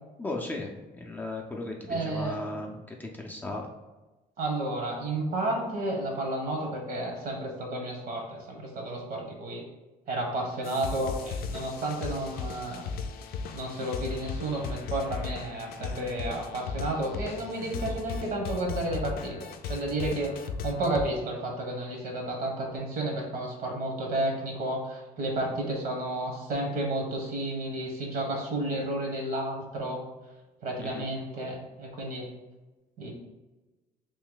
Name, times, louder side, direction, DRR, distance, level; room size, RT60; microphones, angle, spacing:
voice 1, 0.2-3.7 30.8-31.1, left 2 dB, 10° left, -1 dB, 0.5 m, -36 dB
voice 2, 1.9-2.5 4.4-9.6 10.1-12.9 13.5-30.0 30.6-32.3 33.0-33.1, right 1 dB, 60° right, 1 dB, 1.2 m, -32 dB
sound 1, 10.6-21.1, left 5 dB, 65° left, 0.4 m, -37 dB
3.1 x 2.7 x 3.8 m, 1.1 s
cardioid pair, 110°, 17 cm